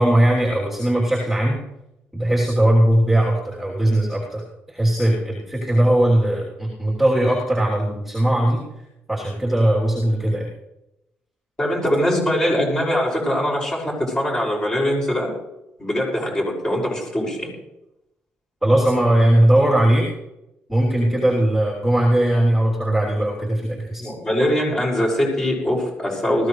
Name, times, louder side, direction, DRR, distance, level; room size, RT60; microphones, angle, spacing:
voice 1, 0.0-1.6 2.1-8.6 9.1-10.5 18.6-20.1 20.7-24.0, right 1 dB, 5° right, -5 dB, 3.3 m, -19 dB
voice 2, 11.6-15.3 15.8-17.5 24.0-26.5, equal, 15° left, -2 dB, 6.3 m, -22 dB
19.5 x 15.5 x 3.3 m, 0.88 s
cardioid pair, 140°, 4 cm